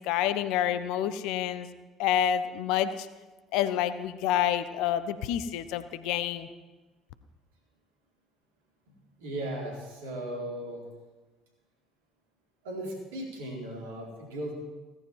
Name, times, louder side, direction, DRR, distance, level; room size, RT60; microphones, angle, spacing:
voice 1, 0.0-1.7 2.0-3.1 3.5-6.5, left 10 dB, 60° left, 13 dB, 0.9 m, -28 dB
voice 2, 9.2-10.8 12.6-14.5, right 1 dB, 70° right, -1 dB, 4.2 m, -37 dB
17.0 x 15.0 x 4.7 m, 1.2 s
figure-of-eight pair, 55°, 0 cm